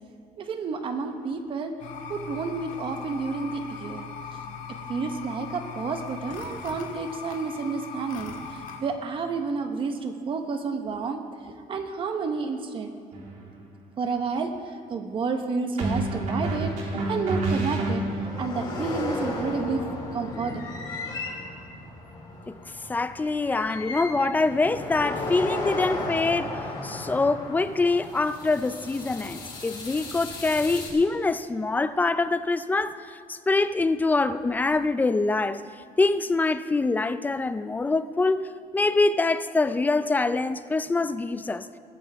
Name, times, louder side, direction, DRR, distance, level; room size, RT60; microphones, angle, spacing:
voice 1, 0.4-1.7 2.1-4.1 4.9-8.3 8.8-12.9 14.0-14.5 14.9-19.9 20.1-20.6, right 4 dB, 35° right, 1.1 m, -30 dB
sound 1, 1.8-8.8, left 6 dB, 60° left, 1.9 m, -39 dB
sound 2, 13.1-13.4 15.8-18.4, right 2 dB, 55° right, 3.2 m, -28 dB
sound 3, 18.1-30.9, left 2 dB, 30° left, 3.9 m, -35 dB
voice 2, 22.9-35.6 36.0-41.7, left 3 dB, 10° left, 0.4 m, -25 dB
20.5 x 14.0 x 3.5 m
cardioid pair, 165°, 15 cm